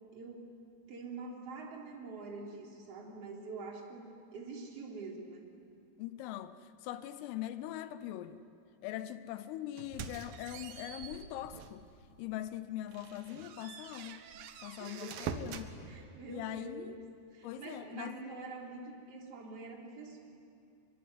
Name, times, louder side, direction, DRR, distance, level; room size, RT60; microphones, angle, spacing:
voice 1, 0.1-0.5 0.9-5.5 14.8-15.2 15.9-17.0 17.3-20.2, right 3 dB, 35° right, -1 dB, 3.7 m, -45 dB
voice 2, 6.0-8.4 8.8-11.8 12.2-14.2 14.6-15.7 16.3-17.0 17.4-18.2, left 13 dB, 80° left, 12 dB, 3.4 m, -42 dB
sound 1, 9.8-11.9 12.3-12.4 12.9-15.7, right 7 dB, 75° right, 2.1 m, -44 dB
26.0 x 23.5 x 9.6 m, 2.5 s
omnidirectional pair, 6.0 m